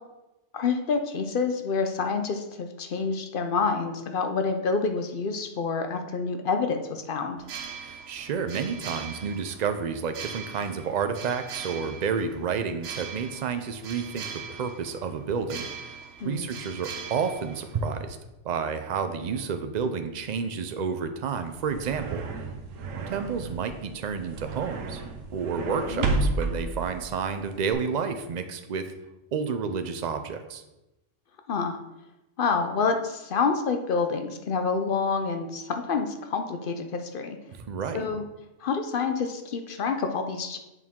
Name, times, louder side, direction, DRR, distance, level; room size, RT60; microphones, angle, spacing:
voice 1, 0.5-7.4 16.2-16.5 25.9-26.1 31.5-31.8 32.4-37.4 37.9-38.2 38.6-40.6, left 5 dB, 55° left, 6 dB, 0.6 m, -28 dB
sound 1, 7.4-18.2, right 6 dB, 75° right, 1.0 m, -41 dB
voice 2, 7.7-15.7 16.2-18.2 18.4-22.2 23.1-25.0 25.3-28.9 29.3-30.6 37.6-38.0, right 6 dB, 50° right, 8 dB, 0.5 m, -30 dB
sound 2, 21.4-27.7, right 3 dB, 90° right, 1.1 m, -32 dB
8.0 x 4.5 x 3.6 m, 0.96 s
omnidirectional pair, 1.3 m